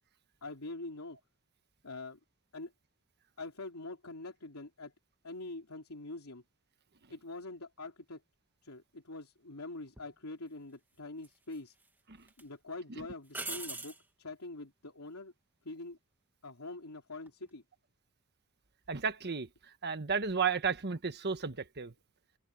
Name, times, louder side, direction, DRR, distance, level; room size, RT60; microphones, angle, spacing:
voice 1, 0.4-1.2 1.8-2.2 2.5-2.7 3.4-4.9 5.2-6.4 7.1-8.2 8.6-11.8 12.4-15.3 15.6-16.0 16.4-17.6, left 2 dB, 75° left, 3.3 m, -44 dB
sound 1, 10.0-10.1 11.2-11.9 12.3-12.4 13.3-14.0 17.1-17.5, right 2 dB, 10° right, 2.3 m, -41 dB
voice 2, 18.9-19.5 19.8-21.9, right 6 dB, 50° right, 1.4 m, -33 dB
head